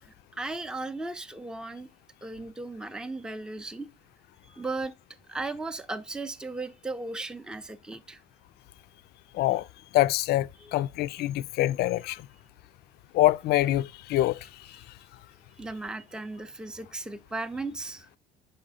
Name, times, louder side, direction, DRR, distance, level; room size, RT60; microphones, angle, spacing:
voice 1, 0.0-1.9 2.2-3.9 4.5-4.9 5.3-8.2 10.6-10.7 15.6-18.1, right 2 dB, 5° right, 0.5 m, -36 dB
voice 2, 9.9-12.2 13.1-14.4, left 15 dB, 70° left, 0.4 m, -25 dB
5.5 x 5.0 x 3.9 m
cardioid pair, 110°, 17 cm